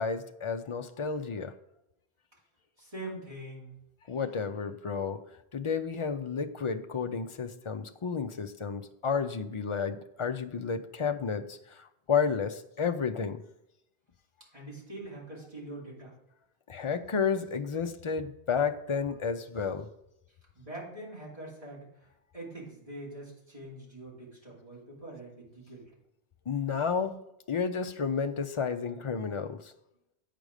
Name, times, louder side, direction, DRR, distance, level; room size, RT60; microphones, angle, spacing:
voice 1, 0.0-1.5 4.1-5.2 5.5-11.6 12.1-13.4 16.7-19.9 26.5-27.1 27.5-29.6, left 6 dB, 40° left, 8 dB, 0.4 m, -31 dB
voice 2, 2.8-3.7 14.5-16.1 20.5-22.1 22.3-25.9, right 1 dB, 35° right, -6 dB, 3.1 m, -44 dB
8.4 x 5.1 x 4.9 m, 0.82 s
omnidirectional pair, 1.1 m